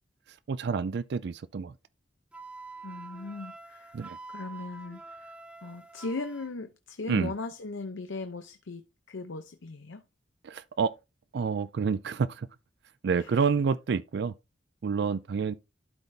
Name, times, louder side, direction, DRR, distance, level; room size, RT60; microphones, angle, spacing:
voice 1, 0.5-1.7 3.9-4.2 7.1-7.3 10.4-10.9 11.3-12.5 13.0-14.3 14.8-15.5, right 5 dB, 60° right, 0.4 m, -28 dB
Wind instrument woodwind instrument, 2.3-6.5, right 3 dB, 5° right, 0.7 m, -46 dB
voice 2, 2.8-3.9 4.3-5.3 5.6-10.0 13.2-13.4, left 3 dB, 85° left, 0.7 m, -38 dB
12.0 x 4.1 x 3.3 m
head